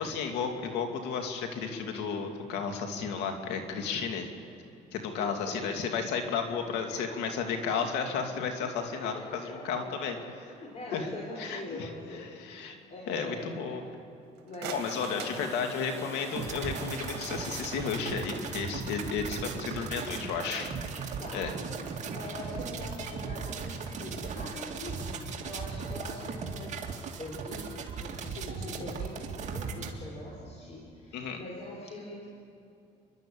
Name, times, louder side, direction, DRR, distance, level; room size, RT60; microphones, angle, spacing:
voice 1, 0.0-4.3 4.9-10.1 10.9-11.1 11.4-11.9 12.4-12.8 13.1-13.8 14.7-20.7 21.3-21.5 31.1-31.4, left 6 dB, 90° left, 4 dB, 2.6 m, -33 dB
voice 2, 5.2-5.8 6.8-7.2 7.8-7.9 8.6-9.5 10.1-10.2 10.6-13.6 14.4-15.6 19.4-20.0 21.2-21.6 22.0-32.3, left 2 dB, 40° left, -2 dB, 4.2 m, -43 dB
sound 1, 14.2-16.3, right 9 dB, 80° right, 1.8 m, -44 dB
Domestic sounds home sounds, 14.6-20.4 22.4-22.5, left 1 dB, 15° left, 3.2 m, -46 dB
sound 2, 16.3-29.9, right 5 dB, 45° right, 2.4 m, -37 dB
28.0 x 12.0 x 8.9 m, 2.7 s
cardioid pair, 110°, 17 cm